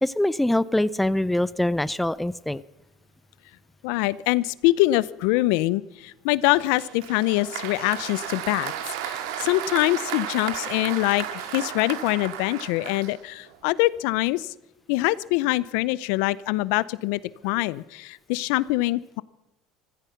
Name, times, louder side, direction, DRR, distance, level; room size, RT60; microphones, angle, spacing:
voice 1, 0.0-2.6, left 1 dB, 5° left, 18 dB, 0.5 m, -24 dB
voice 2, 3.8-14.5 14.9-19.2, left 19 dB, 75° left, 21 dB, 0.5 m, -24 dB
Applause, 6.4-13.6, right 10 dB, 85° right, 1.8 m, -34 dB
15.5 x 14.5 x 5.7 m, 0.90 s
supercardioid pair, 105°, 2 cm